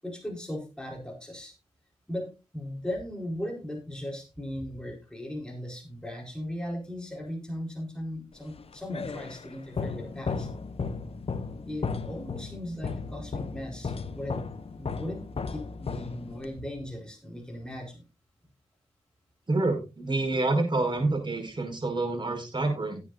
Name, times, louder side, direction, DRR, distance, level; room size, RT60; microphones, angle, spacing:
voice 1, 0.0-1.5 2.1-10.5 11.7-14.4 14.7-18.0, left 1 dB, 5° left, 0 dB, 4.6 m, -37 dB
sound 1, 8.5-16.6, left 4 dB, 55° left, 0.9 m, -35 dB
voice 2, 19.5-23.0, right 2 dB, 40° right, 2 dB, 5.6 m, -27 dB
18.0 x 8.4 x 2.6 m, 0.28 s
cardioid pair, 60°, 12 cm